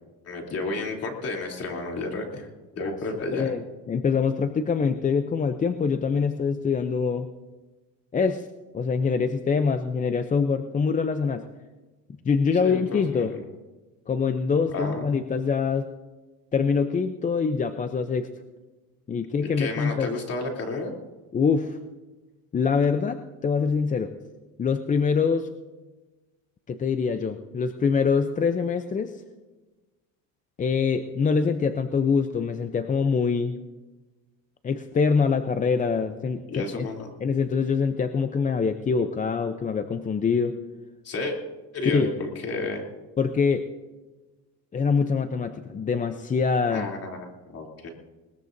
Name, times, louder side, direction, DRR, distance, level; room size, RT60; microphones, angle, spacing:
voice 1, 0.2-2.5 2.8-3.5 12.5-13.4 14.7-15.2 19.4-20.9 36.5-37.1 41.0-41.4 41.7-42.8 46.7-47.9, left 2 dB, 45° left, 0 dB, 3.2 m, -31 dB
voice 2, 3.3-7.3 8.1-8.5 8.7-11.4 12.2-13.3 14.1-15.9 16.5-18.3 19.1-20.1 21.3-21.8 22.5-24.1 24.6-25.5 26.7-29.2 30.6-33.6 34.6-36.9 37.2-40.6 41.9-42.1 43.2-43.6 44.7-46.9, left 5 dB, 20° left, 8 dB, 0.6 m, -24 dB
20.5 x 20.5 x 2.7 m, 1.2 s
cardioid pair, 125°, 36 cm